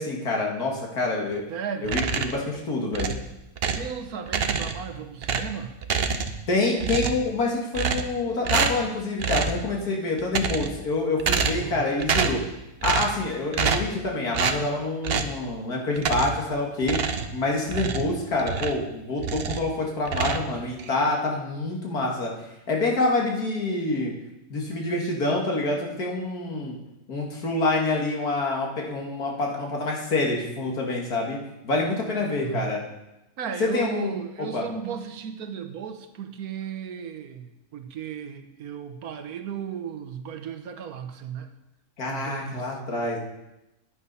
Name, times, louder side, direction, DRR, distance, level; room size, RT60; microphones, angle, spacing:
voice 1, 0.0-1.4 1.8-3.1 6.5-12.4 12.8-17.0 17.3-22.3 22.7-24.1 24.5-26.7 27.1-31.4 31.6-32.8 33.6-34.1 34.4-34.6 42.0-43.2, left 2 dB, 90° left, -1 dB, 2.5 m, -26 dB
voice 2, 1.5-1.9 3.8-5.8 11.3-11.8 32.4-32.7 33.4-41.5 42.1-42.8, right 7 dB, 75° right, 7 dB, 1.4 m, -35 dB
sound 1, 1.8-2.5 2.9-3.9 4.3-4.9 5.2-6.5 6.8-7.3 7.7-8.2 8.5-8.9 9.2-9.6 10.2-10.8 11.2-11.7 12.0-12.5 12.8-13.2 13.5-14.0 14.3-14.6 15.0-15.4 16.0-16.5 16.8-18.9 19.2-19.7 20.1-20.9, right 6 dB, 50° right, 0.8 m, -27 dB
9.9 x 9.3 x 5.5 m, 0.94 s
omnidirectional pair, 1.6 m